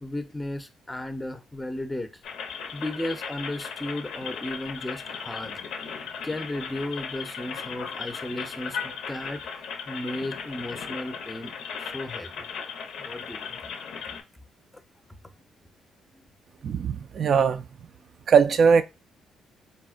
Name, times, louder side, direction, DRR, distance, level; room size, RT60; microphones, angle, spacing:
voice 1, 0.0-2.2 2.7-6.0 6.2-11.5 11.8-12.5 13.0-13.6 16.1-16.2 16.6-16.7, left 1 dB, 10° left, 0.5 m, -35 dB
sound 1, 2.2-14.2, left 6 dB, 80° left, 0.5 m, -37 dB
voice 2, 16.6-17.7 18.3-18.8, right 6 dB, 55° right, 0.3 m, -20 dB
4.1 x 2.1 x 2.4 m
cardioid pair, 90°, 0 cm